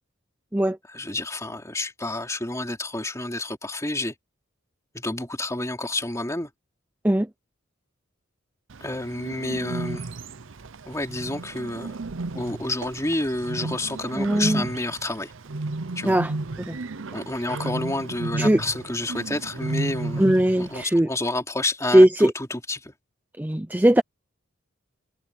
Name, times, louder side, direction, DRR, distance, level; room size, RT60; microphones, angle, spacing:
voice 1, 0.9-4.1 4.9-6.5 8.8-10.1 10.9-12.0 12.3-15.3 16.0-16.2 17.1-20.2 20.6-22.9, left 2 dB, 15° left, 3.5 m, -29 dB
Bird, 8.7-20.8, right 2 dB, 70° right, 0.7 m, -34 dB
voice 2, 14.2-14.6 16.1-16.3 16.6-16.8 18.4-18.6 20.2-21.1 21.9-22.3 23.4-24.0, right 1 dB, 10° right, 0.6 m, -19 dB
head